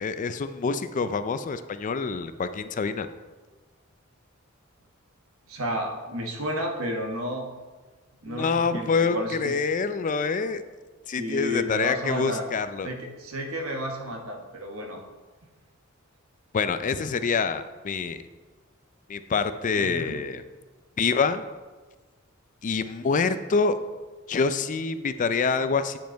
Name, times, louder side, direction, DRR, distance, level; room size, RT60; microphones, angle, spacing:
voice 1, 0.0-3.1 8.3-10.6 11.1-12.9 16.5-18.2 19.1-20.4 21.0-21.4 22.6-23.8 24.3-26.0, left 5 dB, 40° left, 11 dB, 0.4 m, -26 dB
voice 2, 5.5-7.5 8.2-9.5 11.2-12.5 12.8-15.0 19.8-20.2, equal, 85° right, 3 dB, 1.2 m, -32 dB
9.1 x 5.2 x 4.5 m, 1.3 s
head